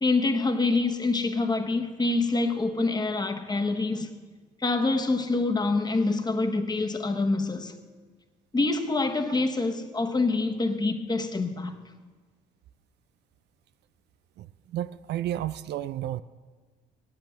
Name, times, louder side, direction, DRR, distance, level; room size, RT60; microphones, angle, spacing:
voice 1, 0.0-4.1 4.6-7.7 8.5-11.7, left 3 dB, 20° left, 1.2 m, -26 dB
voice 2, 14.4-16.2, right 12 dB, 65° right, 0.4 m, -32 dB
8.8 x 8.0 x 8.2 m
supercardioid pair, 70°, 19 cm